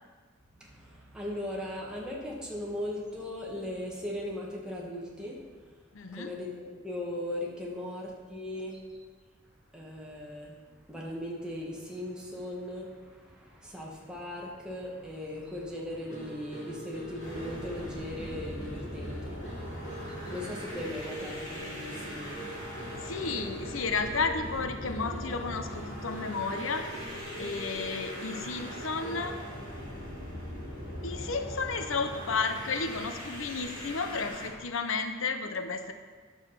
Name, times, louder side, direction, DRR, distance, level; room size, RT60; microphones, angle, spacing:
voice 1, 0.6-5.4 6.1-9.0 9.7-10.6 10.9-23.3 27.8-27.9 30.1-31.3, left 1 dB, 5° right, -4 dB, 1.8 m, -39 dB
voice 2, 5.9-6.3 23.0-26.9 27.4-29.4 31.0-35.9, left 4 dB, 90° left, 7 dB, 0.8 m, -32 dB
sound 1, 16.1-29.4, right 1 dB, 50° left, 3.3 m, -43 dB
sound 2, 17.2-34.5, equal, 70° left, 3.4 m, -41 dB
9.9 x 7.1 x 5.7 m, 1.5 s
head